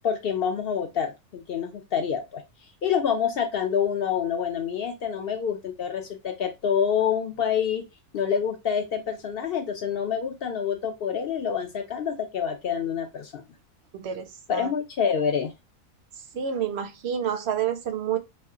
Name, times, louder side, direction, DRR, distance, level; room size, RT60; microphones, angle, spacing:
voice 1, 0.0-2.4 2.8-7.9 8.1-13.4 14.5-15.5, left 7 dB, 60° left, 0.6 m, -27 dB
voice 2, 13.9-14.7 16.3-18.2, right 8 dB, 60° right, 0.8 m, -29 dB
3.2 x 2.3 x 3.7 m
omnidirectional pair, 1.4 m